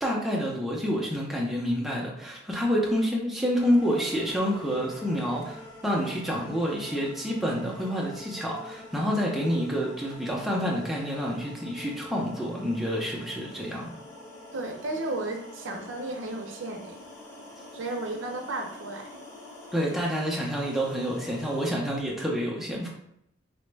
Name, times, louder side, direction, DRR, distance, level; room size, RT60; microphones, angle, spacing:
voice 1, 0.0-13.9 19.7-22.9, equal, ahead, -3 dB, 0.5 m, -28 dB
sound 1, 3.6-21.7, left 1 dB, 90° left, 1.4 m, -46 dB
voice 2, 14.5-17.0 17.7-19.2, right 2 dB, 80° right, 3 dB, 0.5 m, -34 dB
3.0 x 2.1 x 3.2 m, 0.74 s
head